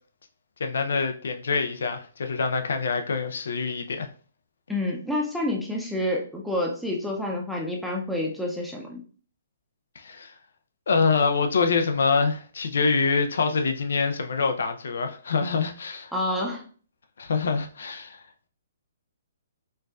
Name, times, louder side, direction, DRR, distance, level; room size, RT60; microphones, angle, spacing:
voice 1, 0.6-4.1 10.0-10.3 10.9-16.1 17.2-18.2, left 4 dB, 75° left, 0.4 m, -25 dB
voice 2, 4.7-9.0 16.1-16.6, left 1 dB, ahead, 0.5 m, -28 dB
4.4 x 2.3 x 2.4 m
hypercardioid pair, 160°, 0 cm